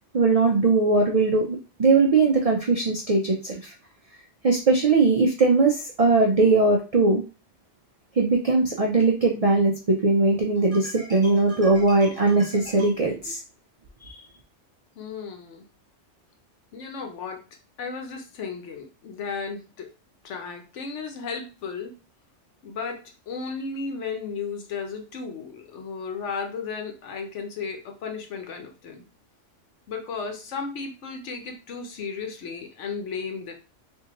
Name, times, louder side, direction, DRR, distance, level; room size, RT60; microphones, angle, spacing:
voice 1, 0.1-3.7 4.4-7.2 8.2-13.4 14.1-14.2, right 3 dB, 70° right, 1 dB, 0.3 m, -20 dB
voice 2, 15.0-15.6 16.7-17.4 17.8-19.9 20.2-21.9 22.6-29.0 29.9-33.5, left 5 dB, 75° left, 3 dB, 1.1 m, -34 dB
3.5 x 2.6 x 2.9 m, 0.33 s
omnidirectional pair, 1.3 m